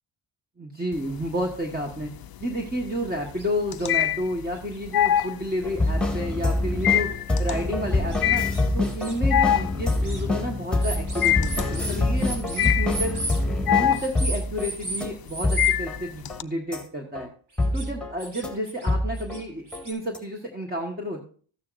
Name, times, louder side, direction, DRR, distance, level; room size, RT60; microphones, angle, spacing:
voice 1, 0.6-2.1 2.4-7.1 7.4-8.4 8.7-13.2 13.7-17.3 17.7-21.2, equal, 20° right, 1 dB, 1.4 m, -31 dB
sound 1, 0.9-1.6 1.9-16.4, left 11 dB, 50° left, 0.5 m, -25 dB
sound 2, 3.4-3.5 3.8-3.9 4.7-4.8 5.2-5.3 5.8-5.9 6.8-6.9 7.3-7.4 8.1-9.2 9.8-10.2 10.8-13.4 13.9-15.0 15.3-15.7 17.6-17.9 18.2-18.9 19.1-19.9, right 2 dB, 50° right, 4.1 m, -35 dB
sound 3, 5.6-14.7 15.0-15.1 15.4-16.0 16.3-16.4 16.7-16.8 17.1-17.3 17.6-18.1 18.4-18.5 18.9-19.4 19.7-19.8 20.1-20.2, left 2 dB, ahead, 1.8 m, -26 dB
13.5 x 9.4 x 2.6 m, 0.43 s
wide cardioid pair, 105°, 49 cm